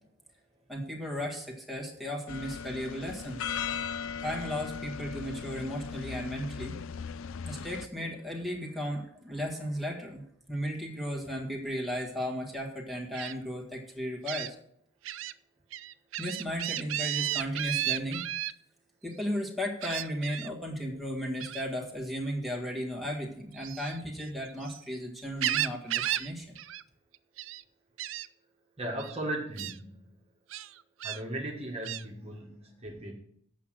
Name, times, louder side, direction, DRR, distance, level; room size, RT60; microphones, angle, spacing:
voice 1, 0.7-3.4 4.2-6.8 7.5-10.2 10.5-14.6 16.2-18.2 19.0-26.5, equal, ahead, -2 dB, 1.7 m, -35 dB
sound 1, 2.3-7.9, left 6 dB, 70° left, 0.4 m, -38 dB
Gull seagull, 13.1-13.3 14.3-14.5 15.0-15.3 15.7-18.5 19.8-20.5 21.4-21.7 23.5-24.8 25.2-26.3 26.6-26.8 27.1-27.6 28.0-28.3 29.0-29.1 29.6-29.8 30.5-31.2 31.8-32.0, right 13 dB, 65° right, 0.4 m, -33 dB
voice 2, 28.8-30.1 31.0-33.1, right 1 dB, 30° right, 0 dB, 1.6 m, -37 dB
8.3 x 6.3 x 7.5 m, 0.68 s
head